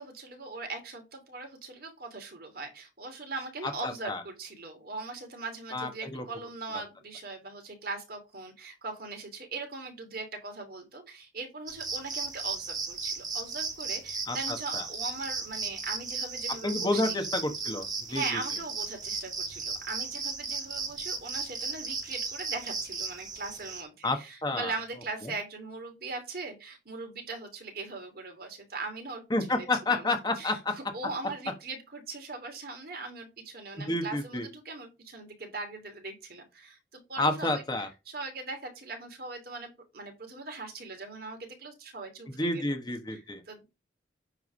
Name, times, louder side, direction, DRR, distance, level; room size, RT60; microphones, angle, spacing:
voice 1, 0.0-17.2 18.1-29.2 29.5-42.7 43.1-43.7, right 3 dB, 55° right, 2.9 m, -40 dB
voice 2, 3.8-4.2 5.7-6.2 14.3-14.4 14.7-14.8 16.6-18.2 24.0-24.7 29.3-30.7 33.9-34.4 37.2-37.9 42.4-43.4, left 2 dB, 25° left, 1.2 m, -29 dB
sound 1, 11.7-23.8, right 4 dB, 20° right, 1.5 m, -35 dB
9.5 x 3.5 x 6.2 m
head